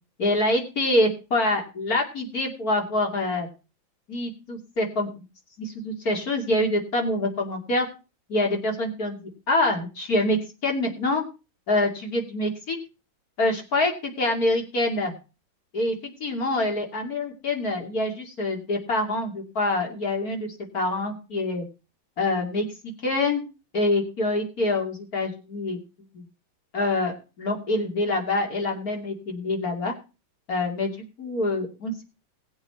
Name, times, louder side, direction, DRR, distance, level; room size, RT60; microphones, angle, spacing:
voice 1, 0.2-3.5 4.1-5.1 5.6-7.9 8.3-11.2 11.7-12.8 13.4-15.1 15.7-21.6 22.2-23.4 23.7-25.8 26.1-26.2 26.7-29.9 30.5-30.9 31.2-31.9, left 2 dB, 45° left, 2 dB, 3.1 m, -26 dB
18.5 x 7.9 x 4.5 m, 0.32 s
omnidirectional pair, 2.2 m